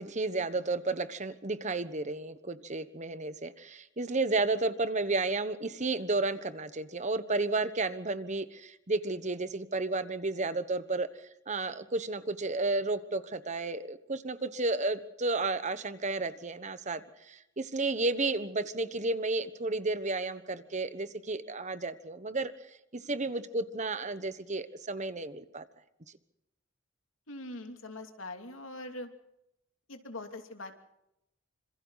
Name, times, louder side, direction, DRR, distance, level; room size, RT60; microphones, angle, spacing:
voice 1, 0.0-11.1 11.5-22.5 22.9-25.6, right 3 dB, 35° right, 12 dB, 1.2 m, -32 dB
voice 2, 27.3-29.1 29.9-30.8, left 2 dB, 90° left, 5 dB, 2.9 m, -42 dB
26.5 x 26.5 x 4.1 m, 0.84 s
head